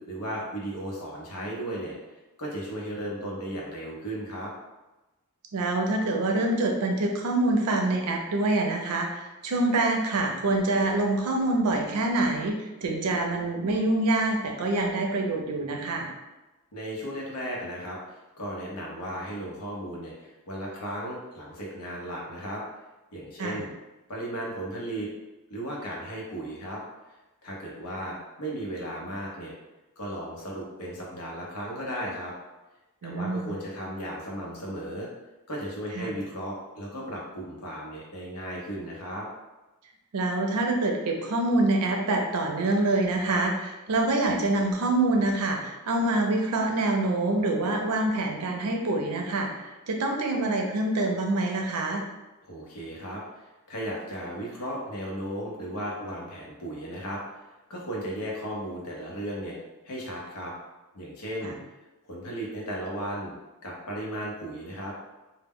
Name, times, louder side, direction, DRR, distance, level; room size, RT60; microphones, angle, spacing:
voice 1, 0.0-2.0 2.4-4.5 16.7-22.6 23.1-23.7 24.1-25.1 25.5-26.8 27.4-29.5 30.0-32.3 33.0-35.1 35.5-39.3 52.4-57.2 57.7-59.6 59.8-60.5 60.9-61.6 62.1-63.3 63.6-64.9, equal, 80° left, -3 dB, 0.7 m, -35 dB
voice 2, 5.5-16.1 23.4-23.6 33.0-33.5 35.9-36.1 40.1-52.0 61.4-61.6, right 2 dB, 85° right, 2 dB, 0.5 m, -26 dB
2.1 x 2.1 x 3.5 m, 1.1 s
head